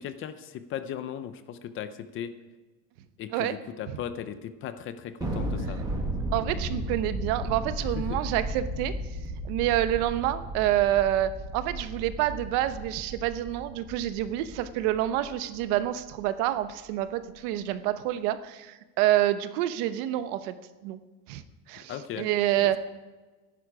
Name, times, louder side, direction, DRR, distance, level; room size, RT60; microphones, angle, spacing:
voice 1, 0.0-2.3 3.2-5.8 7.9-8.2 21.9-22.3 22.6-22.8, left 9 dB, 30° left, 11 dB, 0.5 m, -37 dB
Thunder, 5.2-15.8, right 1 dB, 10° right, 1.5 m, -35 dB
voice 2, 6.3-8.9 9.4-20.5 20.8-21.0 21.3-21.4 21.7-22.8, right 13 dB, 80° right, 12 dB, 1.0 m, -27 dB
15.0 x 11.0 x 4.8 m, 1.2 s
cardioid pair, 175°, 44 cm